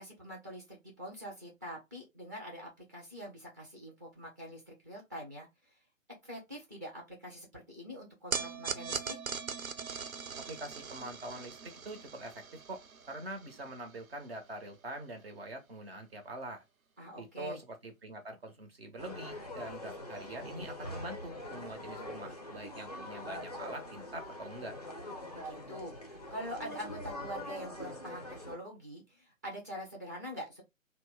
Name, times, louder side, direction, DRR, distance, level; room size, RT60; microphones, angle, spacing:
voice 1, 0.0-5.5 6.2-9.2 17.0-17.6 25.3-30.6, equal, 15° right, 0.6 m, -44 dB
sound 1, 8.3-14.7, right 5 dB, 90° right, 0.6 m, -41 dB
voice 2, 10.5-12.4 12.7-16.6 17.2-24.8, right 1 dB, 45° right, 0.9 m, -44 dB
sound 2, 19.0-28.6, left 1 dB, 30° left, 0.4 m, -43 dB
2.8 x 2.1 x 3.3 m
figure-of-eight pair, 140°, 41 cm